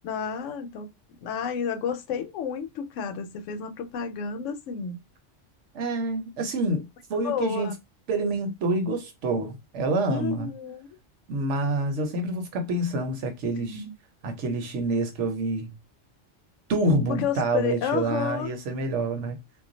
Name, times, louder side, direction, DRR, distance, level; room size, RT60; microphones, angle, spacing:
voice 1, 0.0-0.9 1.2-5.0 7.2-7.7 10.1-10.9 13.5-13.9 17.1-18.5, left 7 dB, 80° left, 0.9 m, -31 dB
voice 2, 5.7-7.7 8.1-10.5 11.3-13.8 14.2-15.7 16.7-19.4, right 2 dB, 75° right, 1.0 m, -27 dB
2.3 x 2.2 x 3.8 m
omnidirectional pair, 1.3 m